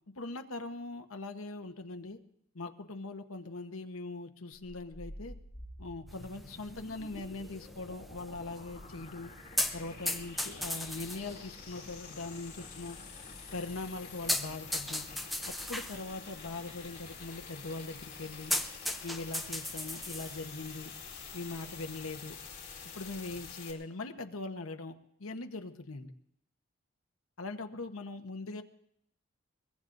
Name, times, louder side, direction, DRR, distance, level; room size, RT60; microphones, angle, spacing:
voice 1, 0.1-2.2 2.5-5.4 5.8-9.3 9.7-13.0 13.5-15.1 15.5-18.5 19.0-20.9 21.3-22.4 22.9-24.9 25.2-26.1 27.4-28.6, left 3 dB, 80° left, 6 dB, 1.0 m, -41 dB
sound 1, 4.5-23.7, left 5 dB, 35° left, 2.8 m, -48 dB
sound 2, 6.1-23.5, left 1 dB, ahead, 0.6 m, -40 dB
23.0 x 21.0 x 2.6 m, 0.74 s
head